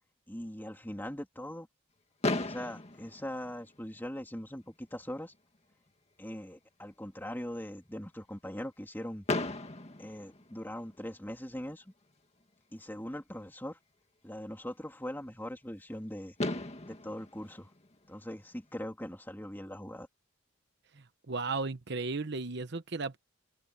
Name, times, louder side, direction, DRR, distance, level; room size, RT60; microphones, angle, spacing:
voice 1, 0.3-1.7 2.4-5.3 6.2-9.2 10.0-11.9 12.7-13.8 14.2-16.4 16.8-17.7 18.1-20.1, equal, 10° left, 3.0 m, -41 dB
Fireworks, 2.2-4.2 5.1-5.2 5.3-5.6 5.9-6.0 9.3-11.1 12.8-12.9 15.9-16.0 16.4-18.7, left 2 dB, 30° left, 2.0 m, -36 dB
voice 2, 21.3-23.2, right 3 dB, 55° right, 1.0 m, -34 dB
open air
head